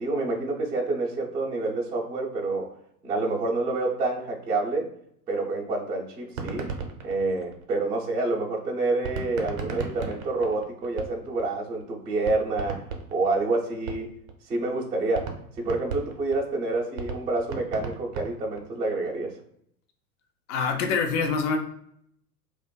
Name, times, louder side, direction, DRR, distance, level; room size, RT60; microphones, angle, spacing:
voice 1, 0.0-2.7 3.0-4.9 5.3-6.7 7.0-12.8 13.1-14.1 14.5-15.3 15.6-19.3, right 2 dB, 10° right, -6 dB, 0.4 m, -28 dB
sound 1, 6.2-8.0 9.0-11.5 11.8-11.9 12.2-14.3 14.7-14.8 15.1-18.8, right 5 dB, 55° right, 0.7 m, -35 dB
voice 2, 20.5-21.6, left 5 dB, 50° left, 5 dB, 0.6 m, -25 dB
2.5 x 2.3 x 2.2 m, 0.69 s
hypercardioid pair, 105°, 46 cm